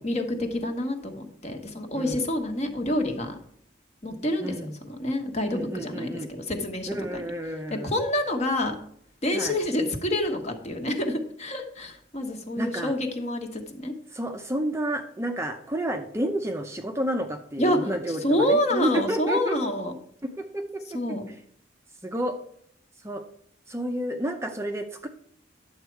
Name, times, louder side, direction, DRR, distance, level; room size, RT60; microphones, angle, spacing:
voice 1, 0.0-3.4 4.0-7.2 7.5-8.8 9.2-13.9 17.6-19.9 20.9-21.2, left 1 dB, 35° left, 5 dB, 1.3 m, -28 dB
voice 2, 1.9-2.3 4.4-4.8 5.5-6.3 6.9-7.9 9.3-9.6 12.6-12.9 14.1-19.6 20.4-20.8 22.0-22.3 23.0-23.2 23.7-25.1, right 1 dB, 15° right, 4 dB, 0.6 m, -30 dB
10.5 x 7.3 x 4.6 m, 0.66 s
head